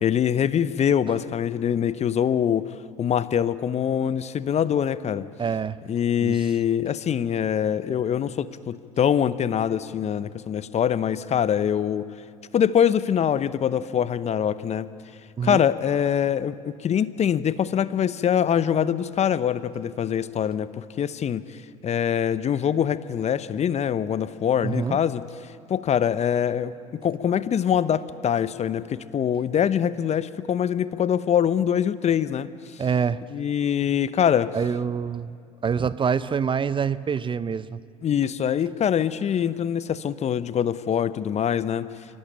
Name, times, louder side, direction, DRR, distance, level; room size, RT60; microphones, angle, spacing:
voice 1, 0.0-5.3 5.9-12.1 12.5-14.9 15.4-25.2 25.7-32.8 33.3-34.6 38.0-41.9, left 9 dB, 35° left, 15 dB, 0.9 m, -24 dB
voice 2, 5.4-5.8 6.2-6.5 15.4-15.6 24.6-25.0 32.8-33.2 34.5-35.4 35.6-37.8, right 6 dB, 25° right, 16 dB, 0.6 m, -26 dB
25.0 x 17.5 x 9.0 m, 2.3 s
hypercardioid pair, 70°, 18 cm